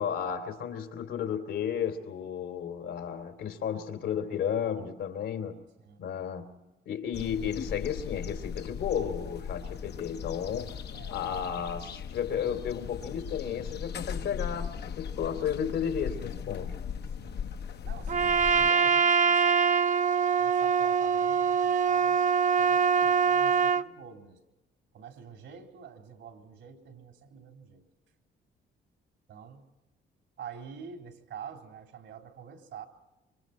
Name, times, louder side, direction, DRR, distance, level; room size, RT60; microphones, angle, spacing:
voice 1, 0.0-5.7 6.0-6.6 6.8-10.8 11.1-16.8, left 8 dB, 80° left, 2.9 m, -33 dB
sound 1, 7.1-18.7, left 7 dB, 55° left, 0.8 m, -38 dB
voice 2, 17.8-19.6 20.4-24.4 24.9-27.8 29.3-29.6 30.4-32.9, right 7 dB, 80° right, 3.8 m, -46 dB
Trumpet, 18.1-23.9, right 6 dB, 40° right, 0.7 m, -24 dB
26.5 x 25.0 x 4.3 m
cardioid pair, 90°, 20 cm